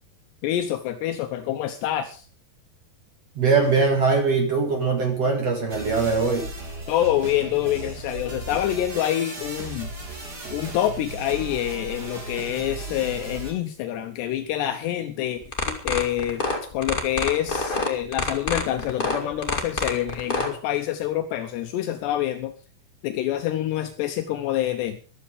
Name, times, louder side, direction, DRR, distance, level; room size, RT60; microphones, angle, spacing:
voice 1, 0.4-2.3 6.9-9.9 10.5-16.4 16.7-22.5 23.0-25.0, left 12 dB, 80° left, 7 dB, 3.0 m, -26 dB
voice 2, 3.4-6.5, right 4 dB, 45° right, 3 dB, 2.6 m, -21 dB
sound 1, 5.7-13.5, right 2 dB, 25° right, 3.0 m, -36 dB
sound 2, 15.4-20.5, left 3 dB, 30° left, 0.9 m, -26 dB
14.0 x 12.5 x 5.1 m, 0.36 s
omnidirectional pair, 5.0 m